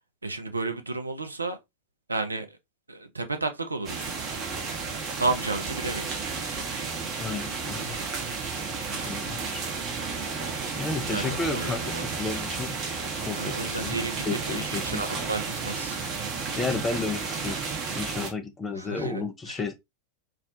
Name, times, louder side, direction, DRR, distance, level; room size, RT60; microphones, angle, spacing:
voice 1, 0.2-1.6 2.1-2.6 2.9-4.1 5.2-6.2 11.1-12.1 13.4-16.0 18.7-19.2 19.5-19.6, right 3 dB, 80° right, 0.3 m, -32 dB
sound 1, 3.8-18.3, right 4 dB, 30° right, 0.7 m, -32 dB
voice 2, 7.2-8.0 9.1-9.6 10.8-12.8 13.1-14.0 14.2-15.0 16.5-17.7 17.9-19.7, left 3 dB, 15° left, 0.4 m, -32 dB
2.3 x 2.1 x 2.5 m
figure-of-eight pair, 90°, 0 cm